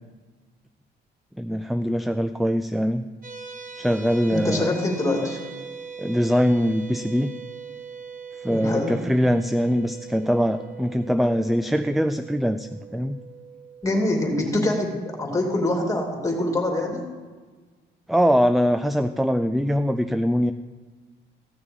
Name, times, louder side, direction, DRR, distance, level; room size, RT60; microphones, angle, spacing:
voice 1, 1.4-3.1 3.8-4.7 6.0-7.3 8.4-13.2 18.1-20.5, equal, ahead, 10 dB, 0.4 m, -22 dB
sound 1, 3.2-14.4, right 6 dB, 45° right, 2.5 m, -41 dB
voice 2, 4.3-5.4 8.5-9.0 13.8-17.0, left 1 dB, 15° left, 1 dB, 2.8 m, -24 dB
15.5 x 6.6 x 5.4 m, 1.4 s
cardioid pair, 90°, 20 cm